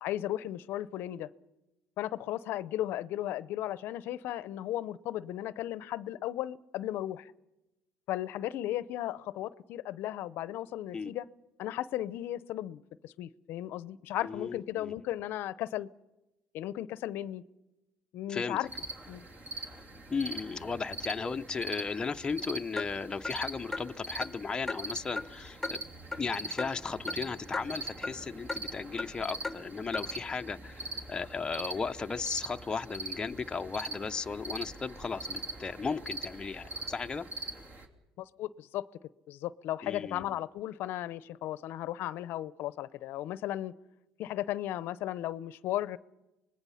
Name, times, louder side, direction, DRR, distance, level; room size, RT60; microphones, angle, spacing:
voice 1, 0.0-1.3 2.0-7.3 8.1-11.3 11.6-15.9 16.5-17.4 18.1-18.7 19.1-19.2 38.2-38.9 39.3-43.7 44.2-46.0, left 13 dB, 65° left, 0.7 m, -35 dB
voice 2, 14.2-14.9 18.3-18.6 20.1-25.8 26.2-37.3 39.8-40.2, left 5 dB, 20° left, 0.6 m, -35 dB
sound 1, 18.7-37.9, right 2 dB, 40° right, 3.1 m, -42 dB
Clock, 22.8-22.9 23.2-23.4 23.7-23.9 24.2-24.3 24.7-24.8 25.2-25.3 25.6-25.8 26.1-26.2 26.6-26.7 27.1-27.2 27.5-27.6 28.0-28.2 28.5-28.6 29.0-29.1 29.4-29.6 29.9-30.1, left 3 dB, 5° left, 1.4 m, -35 dB
25.0 x 20.5 x 5.7 m
supercardioid pair, 100°, 4 cm